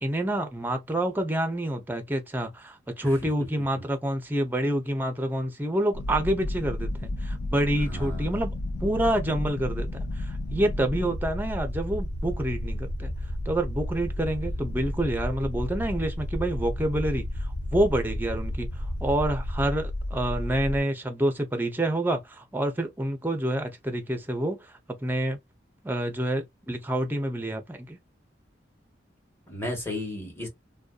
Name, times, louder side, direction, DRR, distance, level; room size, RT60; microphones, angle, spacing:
voice 1, 0.0-8.5 8.8-9.9 10.2-13.1 13.5-17.3 17.7-24.7 25.0-25.4 25.8-28.0, right 1 dB, 10° right, 0.5 m, -28 dB
sound 1, 5.9-20.8, left 1 dB, 65° left, 0.5 m, -32 dB
voice 2, 7.9-8.3 14.7-14.8 29.5-30.5, left 1 dB, 15° left, 1.2 m, -34 dB
2.6 x 2.2 x 2.2 m
head